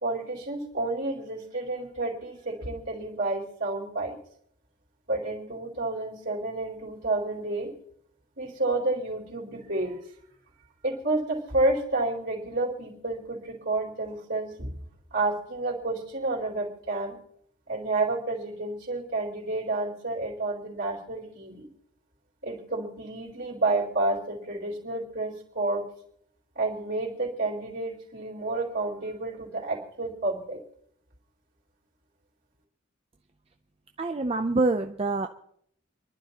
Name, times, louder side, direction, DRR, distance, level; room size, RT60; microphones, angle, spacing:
voice 1, 0.0-4.2 5.1-7.7 8.4-10.0 10.8-14.7 15.1-17.2 17.7-21.7 22.4-25.8 26.5-30.6, right 2 dB, 55° right, -4 dB, 4.2 m, -30 dB
voice 2, 34.0-35.3, right 3 dB, 30° right, 6 dB, 0.5 m, -26 dB
27.5 x 11.5 x 2.9 m, 0.69 s
head